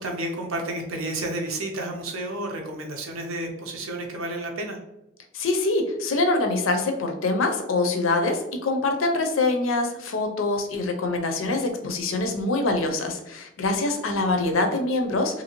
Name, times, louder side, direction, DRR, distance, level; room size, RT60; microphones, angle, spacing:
voice 1, 0.0-4.8, right 1 dB, 85° right, 2 dB, 0.7 m, -31 dB
voice 2, 5.3-15.4, left 2 dB, 75° left, 4 dB, 0.5 m, -24 dB
2.7 x 2.7 x 2.9 m, 0.89 s
head